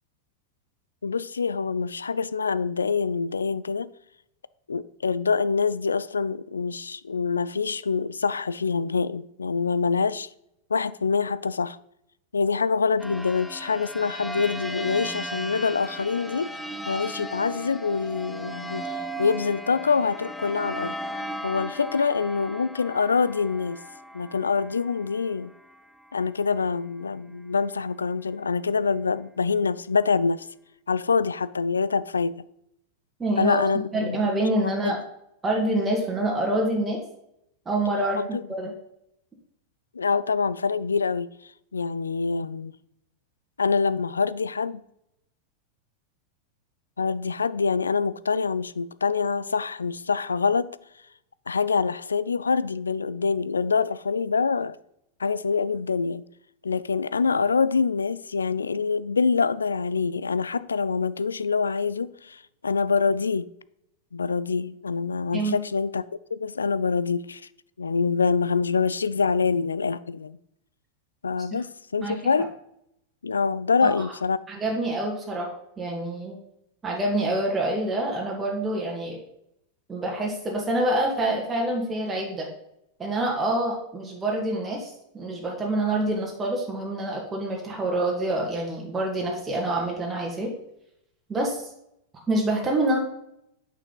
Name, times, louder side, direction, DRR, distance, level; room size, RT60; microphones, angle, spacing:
voice 1, 1.0-3.9 4.7-10.3 10.7-11.8 12.3-16.5 16.9-18.9 19.2-20.9 21.4-23.8 24.1-25.5 26.1-30.5 30.9-32.4 33.4-34.3 34.6-35.0 38.2-38.4 39.9-41.3 41.7-42.7 43.6-44.8 47.0-50.8 51.5-54.8 55.2-56.2 56.6-63.5 64.1-66.0 66.3-67.4 67.8-70.4 71.2-72.5 73.2-74.4, left 5 dB, 75° left, 0.3 m, -25 dB
sound 1, 13.0-26.2, right 1 dB, ahead, 0.8 m, -37 dB
voice 2, 33.2-33.6 33.9-35.0 35.4-37.0 37.7-38.7 65.3-65.6 72.0-72.2 73.8-74.1 74.5-76.4 76.8-79.2 79.9-82.5 83.0-90.5 91.3-91.7 92.3-93.0, right 1 dB, 15° right, 1.8 m, -26 dB
8.9 x 6.6 x 3.9 m
figure-of-eight pair, 90°, 0 cm